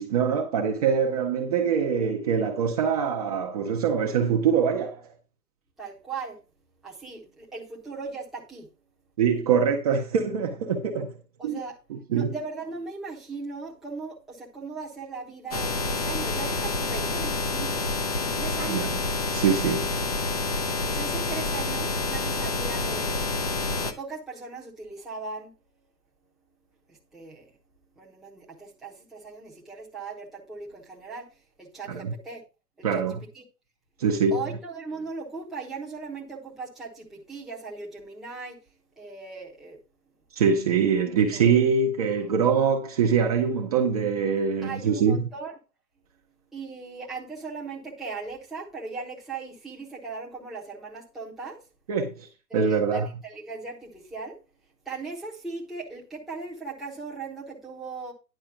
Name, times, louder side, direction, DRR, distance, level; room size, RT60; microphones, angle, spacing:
voice 1, 0.0-5.1 9.2-11.1 11.4-11.6 11.9-12.3 18.6-18.9 19.3-20.0 31.9-32.1 32.8-33.2 34.0-34.4 40.3-45.2 51.9-53.1, right 6 dB, 25° right, 0.8 m, -24 dB
voice 2, 5.8-6.4 6.8-8.7 11.4-11.7 12.1-17.9 18.2-18.9 20.8-23.2 23.7-25.5 26.9-27.5 28.0-32.4 32.8-33.0 33.3-33.4 34.3-38.6 39.0-39.8 41.3-41.6 44.6-45.5 46.5-51.6 52.5-54.4 54.8-58.1, right 4 dB, ahead, 1.0 m, -38 dB
sound 1, 15.5-23.9, left 3 dB, 25° left, 0.6 m, -28 dB
10.5 x 4.7 x 5.8 m
hypercardioid pair, 145°, 50 cm